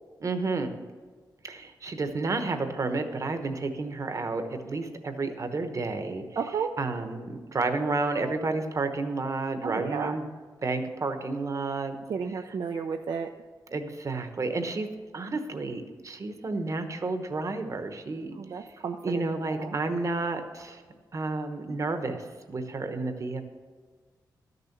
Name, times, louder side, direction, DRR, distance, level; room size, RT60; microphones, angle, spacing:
voice 1, 0.2-0.7 1.4-6.2 6.8-10.2 10.6-12.0 13.7-14.9 15.1-18.3 19.0-20.8 21.1-23.4, right 3 dB, 45° right, 7 dB, 1.1 m, -31 dB
voice 2, 6.4-6.7 9.6-10.1 12.1-13.3 18.4-19.8, right 6 dB, 65° right, 4 dB, 0.5 m, -33 dB
13.0 x 6.8 x 5.9 m, 1.5 s
wide cardioid pair, 110°, 8 cm